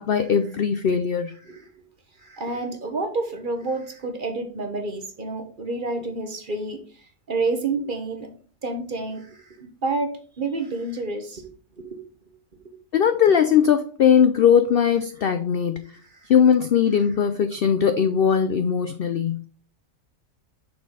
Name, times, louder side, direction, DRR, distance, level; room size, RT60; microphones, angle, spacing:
voice 1, 0.0-1.3 12.9-15.9 16.3-19.5, left 7 dB, 70° left, 9 dB, 0.5 m, -19 dB
voice 2, 2.2-8.3 8.6-11.5 11.7-12.0 12.6-12.7 16.1-16.3, right 3 dB, 40° right, 6 dB, 1.0 m, -29 dB
5.9 x 4.4 x 4.7 m, 0.41 s
omnidirectional pair, 1.5 m